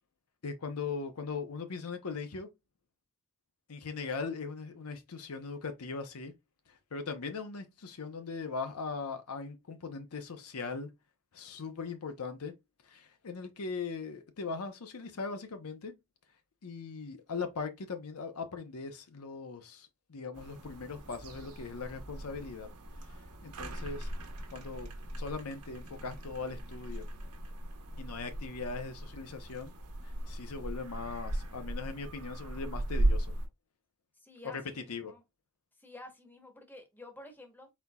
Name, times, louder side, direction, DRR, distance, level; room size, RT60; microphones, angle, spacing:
voice 1, 0.4-2.5 3.7-6.3 6.7-10.9 11.3-12.6 12.9-15.9 16.6-22.7 23.4-24.1 24.5-24.9 25.2-27.1 28.0-29.7 30.0-33.3 34.4-35.1, left 4 dB, 75° left, 0.7 m, -39 dB
sound 1, 20.3-33.5, right 1 dB, 90° right, 1.1 m, -37 dB
voice 2, 34.2-35.2 35.8-37.7, left 1 dB, 10° left, 1.0 m, -51 dB
4.2 x 4.1 x 2.3 m
head